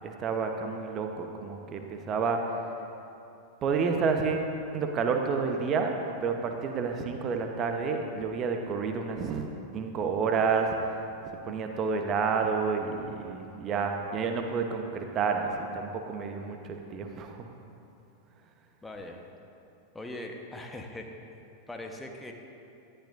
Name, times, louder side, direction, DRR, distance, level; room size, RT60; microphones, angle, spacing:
voice 1, 0.0-2.6 3.6-10.7 11.3-17.5, right 5 dB, 30° right, 4 dB, 1.1 m, -30 dB
voice 2, 18.8-19.3 19.9-21.1 21.7-22.3, left 1 dB, 5° left, 1 dB, 1.2 m, -40 dB
19.0 x 13.5 x 2.7 m, 2.7 s
figure-of-eight pair, 90°, 0 cm